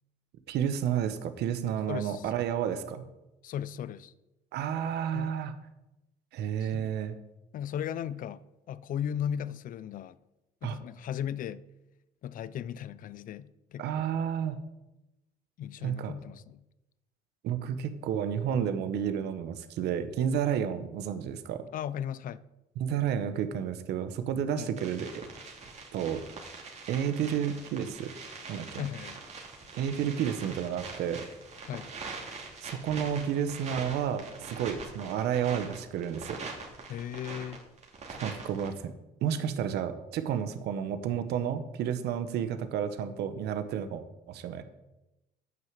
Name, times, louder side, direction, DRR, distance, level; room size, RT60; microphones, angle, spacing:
voice 1, 0.5-3.1 4.5-5.5 6.3-7.2 10.6-10.8 13.8-14.6 15.8-16.1 17.4-21.6 22.8-25.1 25.9-26.2 26.9-28.1 28.5-28.8 29.7-31.2 32.6-36.4 38.2-38.9 39.2-44.6, right 8 dB, 80° right, 1.0 m, -31 dB
voice 2, 1.9-2.3 3.4-4.1 5.1-5.3 6.6-6.9 7.5-8.4 8.7-10.2 10.6-11.6 12.2-14.0 15.6-16.6 21.7-22.4 24.6-24.7 28.7-29.2 31.6-31.9 36.9-37.6, left 9 dB, 55° left, 0.5 m, -36 dB
sound 1, 24.8-38.7, right 4 dB, 40° right, 2.6 m, -43 dB
9.2 x 6.1 x 7.4 m
cardioid pair, 110°, 17 cm